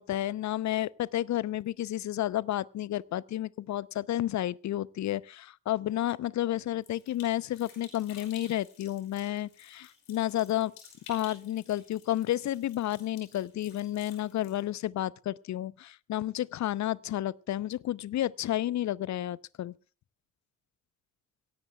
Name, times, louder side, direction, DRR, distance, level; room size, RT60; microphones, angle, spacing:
voice 1, 0.0-10.7 11.1-19.7, left 13 dB, 45° left, 0.7 m, -31 dB
sound 1, 6.8-14.6, left 6 dB, 70° left, 5.7 m, -54 dB
23.5 x 17.0 x 2.3 m
figure-of-eight pair, 40°, 39 cm